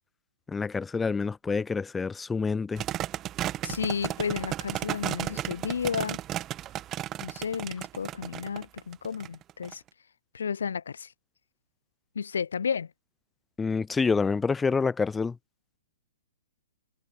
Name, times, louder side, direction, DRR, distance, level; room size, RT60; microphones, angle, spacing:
voice 1, 0.5-2.8 13.6-15.3, left 4 dB, 10° left, 0.6 m, -27 dB
sound 1, 2.8-9.7, right 12 dB, 25° right, 1.4 m, -34 dB
voice 2, 3.6-6.2 7.2-9.8 10.3-11.1 12.2-12.9, left 6 dB, 65° left, 0.5 m, -32 dB
figure-of-eight pair, 115°, 0 cm